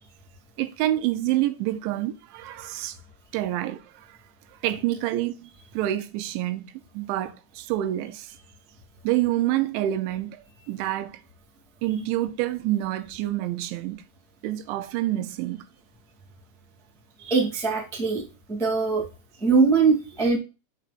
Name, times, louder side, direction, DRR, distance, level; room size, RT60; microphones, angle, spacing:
voice 1, 0.6-3.0 3.3-4.2 4.6-8.3 9.0-11.2 11.8-14.0 14.4-15.6, right 14 dB, 85° right, 3.0 m, -27 dB
voice 2, 17.2-18.2 18.5-19.0 19.4-20.4, right 4 dB, 5° left, 0.4 m, -21 dB
8.1 x 7.2 x 2.5 m
omnidirectional pair, 5.3 m